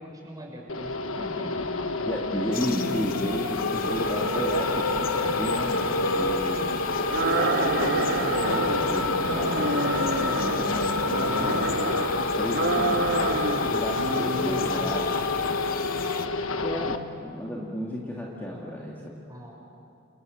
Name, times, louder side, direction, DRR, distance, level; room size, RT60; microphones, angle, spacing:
voice 1, 0.0-1.8 2.4-2.8 10.2-10.4 14.1-15.3 19.3-19.5, equal, 20° right, -1 dB, 6.3 m, -42 dB
sound 1, 0.7-17.0, left 3 dB, 75° left, 1.3 m, -27 dB
voice 2, 2.1-7.4 7.8-11.6 12.3-15.1 16.6-19.2, equal, 10° left, -4 dB, 2.4 m, -33 dB
sound 2, 2.5-16.3, left 8 dB, 45° left, 1.1 m, -41 dB
sound 3, 7.1-8.8 9.2-10.7 11.1-12.1 12.5-13.7 14.0-14.7, right 3 dB, 60° right, 1.5 m, -28 dB
29.5 x 29.0 x 6.6 m, 2.7 s
head